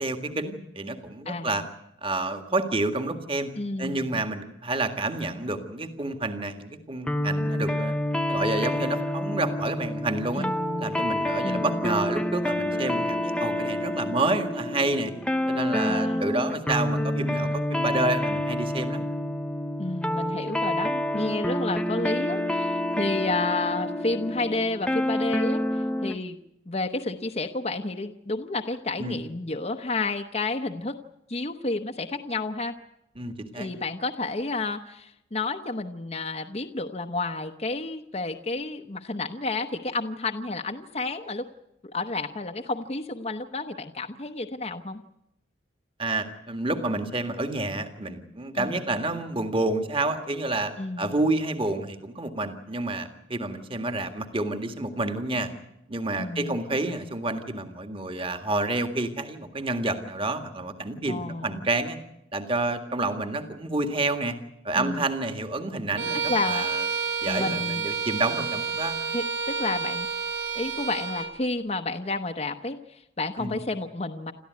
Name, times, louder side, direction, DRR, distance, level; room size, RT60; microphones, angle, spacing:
voice 1, 0.0-1.6 2.0-3.5 3.8-7.9 8.3-10.5 10.8-15.1 15.5-19.0 29.0-29.2 33.2-33.7 46.0-55.5 55.9-62.0 62.3-64.4 64.6-66.2 66.5-66.8 67.2-69.0 73.4-73.6, right 2 dB, 25° right, 7 dB, 1.9 m, -29 dB
voice 2, 1.2-1.6 3.6-4.2 10.3-11.0 11.4-11.9 15.9-16.3 19.8-26.4 26.7-30.9 31.3-32.8 33.5-41.4 41.8-45.0 48.6-48.8 50.8-51.2 56.2-56.6 61.1-61.6 64.7-65.1 66.3-66.7 67.3-67.8 69.1-70.1 70.5-74.3, left 3 dB, 30° left, 4 dB, 0.9 m, -31 dB
sound 1, 7.1-26.2, left 1 dB, 5° left, 0.8 m, -28 dB
Bowed string instrument, 66.0-71.4, right 5 dB, 70° right, 3.2 m, -30 dB
28.5 x 14.0 x 9.4 m, 0.85 s
head